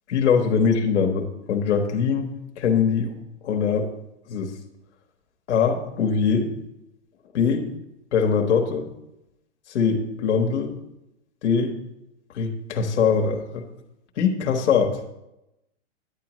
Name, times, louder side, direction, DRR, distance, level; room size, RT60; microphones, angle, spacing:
voice 1, 0.1-3.1 3.4-3.9 4.3-4.5 5.5-6.5 7.3-7.6 8.1-8.9 9.7-10.7 11.4-11.7 12.3-13.7 14.2-15.0, left 6 dB, 70° left, 3 dB, 1.3 m, -22 dB
9.8 x 8.6 x 3.1 m, 0.88 s
hypercardioid pair, 140°, 36 cm